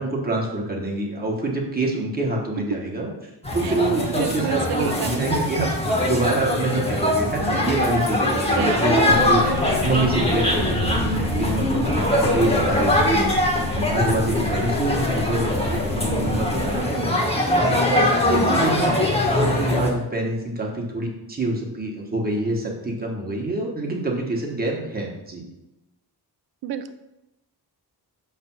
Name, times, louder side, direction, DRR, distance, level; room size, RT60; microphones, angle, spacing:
voice 1, 0.0-3.1 3.5-13.4 13.7-18.9 19.3-25.4, right 2 dB, 25° right, -1 dB, 1.2 m, -26 dB
sound 1, 3.4-19.9, left 1 dB, 15° left, 1.2 m, -22 dB
voice 2, 4.2-5.2 8.5-8.8 26.6-26.9, right 9 dB, 70° right, 10 dB, 0.5 m, -29 dB
sound 2, 9.1-16.8, left 4 dB, 50° left, 0.7 m, -32 dB
6.6 x 3.4 x 5.9 m, 0.93 s
wide cardioid pair, 180°, 40 cm